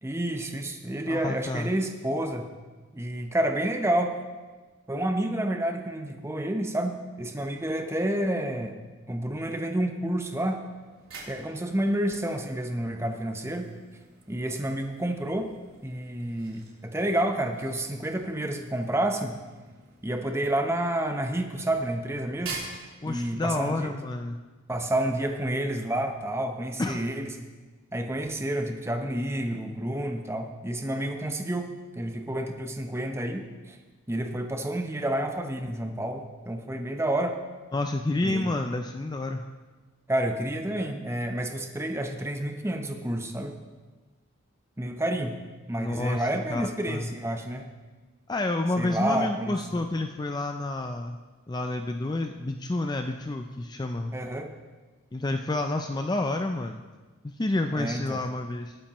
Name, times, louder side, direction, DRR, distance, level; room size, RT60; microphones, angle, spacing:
voice 1, 0.0-2.5 2.9-4.2 4.9-8.8 9.1-10.6 11.3-13.7 14.3-15.5 15.8-19.4 20.0-22.6 23.1-23.9 24.7-27.3 27.9-33.8 34.1-37.4 38.2-38.5 40.1-43.6 44.8-45.4 45.7-47.7 48.8-49.5 54.1-54.5 57.7-58.2, right 1 dB, 15° right, 5 dB, 0.8 m, -29 dB
voice 2, 1.1-1.7 23.0-24.4 26.8-27.0 37.7-39.4 45.8-47.1 48.3-51.2 51.5-54.1 55.1-56.8 57.2-58.8, left 2 dB, 20° left, 5 dB, 0.4 m, -29 dB
sound 1, 10.7-23.7, right 4 dB, 90° right, 3.4 m, -47 dB
19.0 x 8.8 x 3.0 m, 1.3 s
head